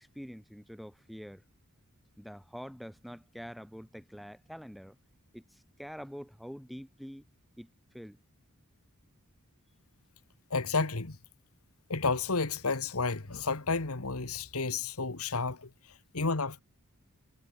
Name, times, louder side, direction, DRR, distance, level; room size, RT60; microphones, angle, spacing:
voice 1, 0.0-1.4 2.2-5.0 5.3-7.2 7.6-7.7 7.9-8.2, equal, ahead, 7.7 m, -45 dB
voice 2, 10.5-11.2 11.9-15.7 16.1-16.6, left 4 dB, 70° left, 1.7 m, -31 dB
head